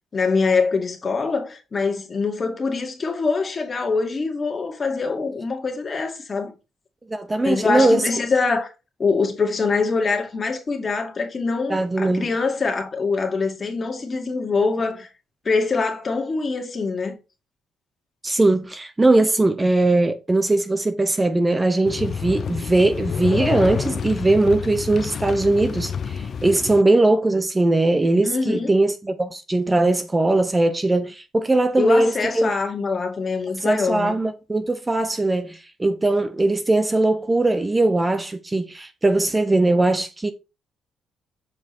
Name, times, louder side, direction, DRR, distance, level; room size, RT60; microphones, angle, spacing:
voice 1, 0.1-6.5 7.4-8.7 9.0-15.1 15.4-17.2 28.2-28.7 31.8-34.1, left 4 dB, 35° left, 2.3 m, -24 dB
voice 2, 7.1-8.1 11.7-12.3 18.2-32.5 33.6-40.3, right 2 dB, 20° right, 0.8 m, -20 dB
sound 1, 21.8-26.8, left 6 dB, 50° left, 0.5 m, -28 dB
7.2 x 5.1 x 4.3 m
cardioid pair, 90°, 0 cm